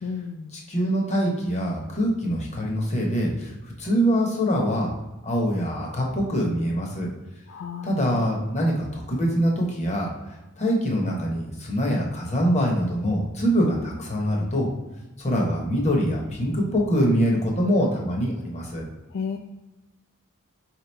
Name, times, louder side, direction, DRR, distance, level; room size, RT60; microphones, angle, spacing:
voice 1, 0.0-0.5 7.5-8.0 19.1-19.4, left 6 dB, 55° left, 3 dB, 0.3 m, -32 dB
voice 2, 0.5-4.9 5.2-7.1 7.8-14.7 15.2-18.8, equal, 30° left, -1 dB, 0.9 m, -24 dB
4.8 x 3.0 x 3.2 m, 1.0 s
head